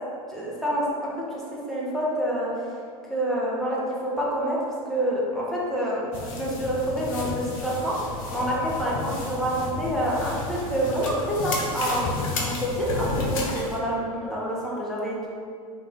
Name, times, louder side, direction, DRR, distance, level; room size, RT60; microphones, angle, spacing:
voice 1, 0.3-1.4 1.7-2.7 3.1-4.6 4.9-15.3, right 1 dB, ahead, -7 dB, 0.9 m, -27 dB
sound 1, 6.1-13.8, left 3 dB, 60° left, 0.7 m, -32 dB
3.5 x 2.5 x 3.4 m, 2.2 s
hypercardioid pair, 90°, 19 cm